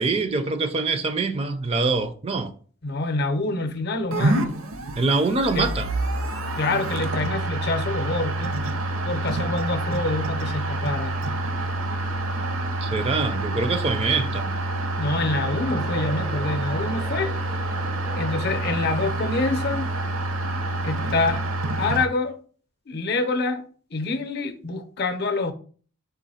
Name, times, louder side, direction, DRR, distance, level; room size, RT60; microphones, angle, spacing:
voice 1, 0.0-2.5 5.0-5.9 12.8-14.6, right 3 dB, 30° right, 0.4 m, -24 dB
voice 2, 2.8-4.6 5.5-5.7 6.6-8.5 9.0-11.2 15.0-17.3 18.2-19.9 20.8-21.4 21.8-22.4 22.9-23.6 23.9-25.5, left 3 dB, 50° left, 0.6 m, -26 dB
sound 1, 4.1-22.1, right 2 dB, 70° right, 0.6 m, -27 dB
Crowd, 15.2-20.2, equal, 90° right, 1.4 m, -41 dB
3.9 x 3.0 x 4.1 m
head